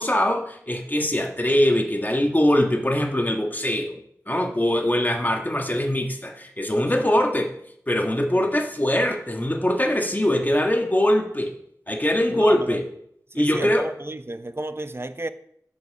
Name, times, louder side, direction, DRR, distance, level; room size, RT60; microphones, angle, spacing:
voice 1, 0.0-4.0 4.3-7.5 7.9-11.5 11.9-12.8 13.3-13.8, left 1 dB, 25° left, 1.5 m, -22 dB
voice 2, 12.3-12.8 13.3-15.3, right 2 dB, 35° right, 0.7 m, -32 dB
8.9 x 5.6 x 6.6 m
wide cardioid pair, 45°, 7 cm